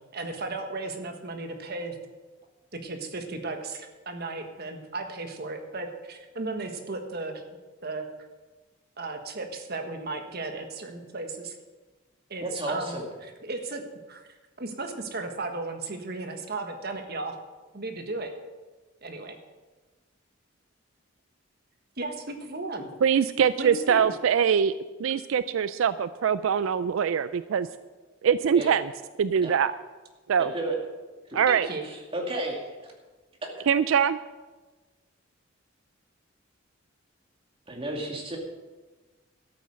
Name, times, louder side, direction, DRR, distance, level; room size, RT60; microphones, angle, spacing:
voice 1, 0.1-2.0 2.8-7.4 7.8-8.1 9.0-11.6 12.3-13.0 13.2-14.3 14.6-17.4 17.7-18.3 19.0-19.4 22.0-22.9 23.6-24.1 31.5-31.8, right 3 dB, 50° right, 5 dB, 1.5 m, -35 dB
voice 2, 12.4-13.0 28.5-28.7 29.4-29.5 30.4-30.8 31.3-31.4 32.1-32.7 37.7-38.4, right 1 dB, 25° right, 0 dB, 2.4 m, -32 dB
voice 3, 23.0-24.7 25.0-27.7 28.2-28.9 29.2-29.7 30.3-30.5 31.3-31.7 33.7-34.2, right 7 dB, 80° right, 14 dB, 0.4 m, -23 dB
12.5 x 8.7 x 6.4 m, 1.2 s
head